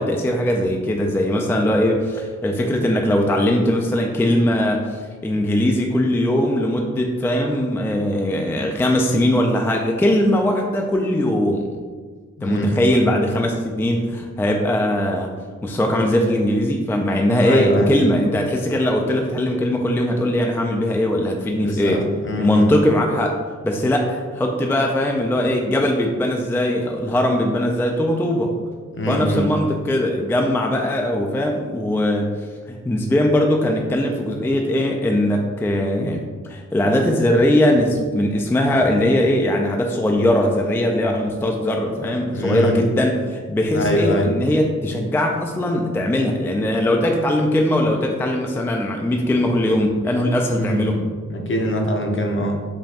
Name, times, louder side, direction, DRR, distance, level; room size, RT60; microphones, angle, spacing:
voice 1, 0.0-11.7 12.4-15.3 15.6-22.0 22.4-23.4 23.6-28.5 29.1-32.3 32.7-36.2 36.5-51.0, left 1 dB, 10° left, 1 dB, 0.3 m, -20 dB
voice 2, 12.4-12.7 17.4-17.9 21.6-22.7 28.9-29.5 42.3-42.8 43.7-44.3 50.6-51.0 51.3-52.6, equal, 40° left, 1 dB, 0.7 m, -23 dB
5.1 x 2.3 x 2.8 m, 1.6 s
cardioid pair, 70°, 30 cm